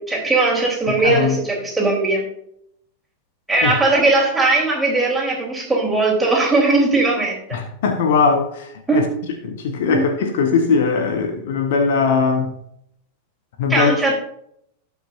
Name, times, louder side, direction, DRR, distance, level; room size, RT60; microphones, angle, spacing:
voice 1, 0.0-2.3 3.5-7.4 8.9-9.1 9.9-10.1 13.7-14.1, right 2 dB, 10° right, 3.6 m, -19 dB
voice 2, 1.0-1.4 3.6-3.7 7.5-9.1 9.4-12.5 13.6-13.9, left 5 dB, 55° left, 1.1 m, -19 dB
17.0 x 5.9 x 2.7 m
figure-of-eight pair, 90°, 0 cm